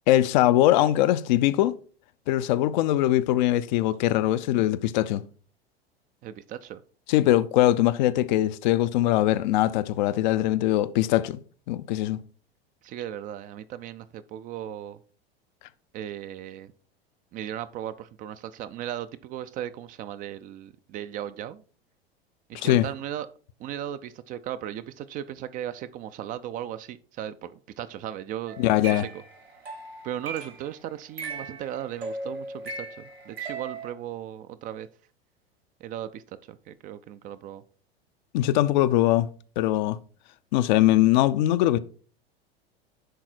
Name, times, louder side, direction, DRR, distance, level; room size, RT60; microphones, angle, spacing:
voice 1, 0.1-1.7 2.3-5.2 7.1-11.4 11.7-12.2 22.5-22.8 28.6-29.1 38.3-39.3 39.6-40.0 40.5-41.8, left 14 dB, 50° left, 0.5 m, -21 dB
voice 2, 6.2-6.8 12.8-15.0 15.9-16.7 17.3-21.6 22.5-23.3 23.6-27.5 27.8-28.6 28.9-29.2 30.0-34.9 35.8-37.6, right 11 dB, 25° right, 0.4 m, -37 dB
sound 1, 28.5-30.7 31.2-33.9, right 3 dB, 80° right, 1.6 m, -38 dB
10.5 x 3.9 x 4.4 m
figure-of-eight pair, 85°, 30 cm